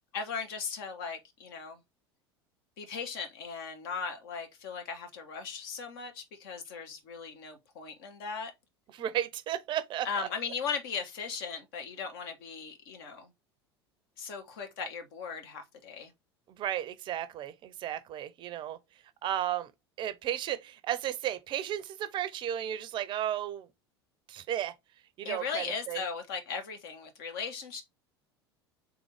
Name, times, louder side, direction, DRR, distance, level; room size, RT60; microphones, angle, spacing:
voice 1, 0.1-1.8 2.8-8.5 10.0-13.3 14.2-16.1 25.2-27.8, left 5 dB, 60° left, 1.1 m, -38 dB
voice 2, 8.9-10.3 16.5-18.8 19.2-19.7 20.0-23.7 24.3-24.7 25.2-26.0, right 11 dB, 35° right, 0.5 m, -34 dB
3.7 x 3.6 x 3.4 m
figure-of-eight pair, 75°, 14 cm